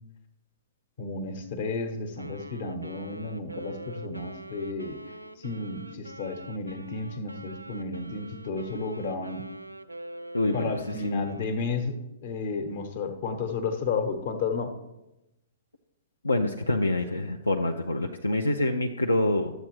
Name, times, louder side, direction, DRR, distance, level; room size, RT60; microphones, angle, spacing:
voice 1, 1.0-5.0 5.4-9.4 10.5-14.7, left 4 dB, 50° left, 7 dB, 1.1 m, -32 dB
Wind instrument woodwind instrument, 2.2-11.8, right 1 dB, 90° right, 0.4 m, -44 dB
voice 2, 10.3-11.2 16.2-19.5, left 2 dB, 80° left, 4 dB, 0.5 m, -26 dB
12.0 x 7.9 x 3.1 m, 0.96 s
figure-of-eight pair, 110°, 0 cm